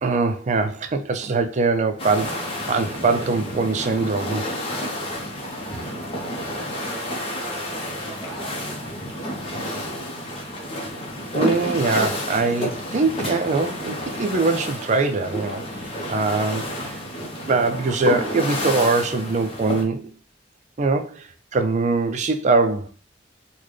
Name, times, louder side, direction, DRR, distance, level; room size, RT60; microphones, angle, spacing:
voice 1, 0.0-4.4 11.3-15.6 16.1-17.0 17.5-20.1 20.8-22.9, right 3 dB, 40° right, 0.4 m, -22 dB
sound 1, 2.0-19.8, equal, 35° left, 0.7 m, -30 dB
voice 2, 5.6-6.7 7.2-9.4, right 2 dB, 5° left, 1.5 m, -43 dB
3.8 x 2.2 x 3.2 m
head